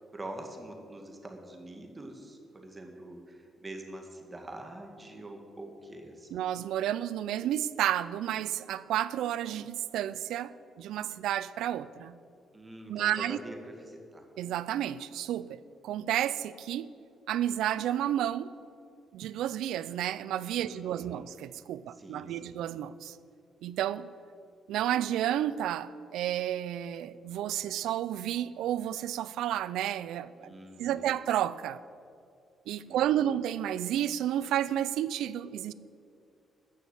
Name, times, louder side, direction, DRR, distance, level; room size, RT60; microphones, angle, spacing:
voice 1, 0.1-6.4 12.5-14.3 20.6-21.2 21.9-22.7 30.4-31.2 32.9-33.4, right 1 dB, 20° right, 1.9 m, -45 dB
voice 2, 6.3-12.2 12.9-13.4 14.4-16.9 17.3-18.5 19.1-23.2 23.6-24.1 24.7-30.5 30.8-31.8 32.7-35.7, right 11 dB, 85° right, 0.4 m, -31 dB
13.5 x 6.4 x 9.0 m
cardioid pair, 90°, 0 cm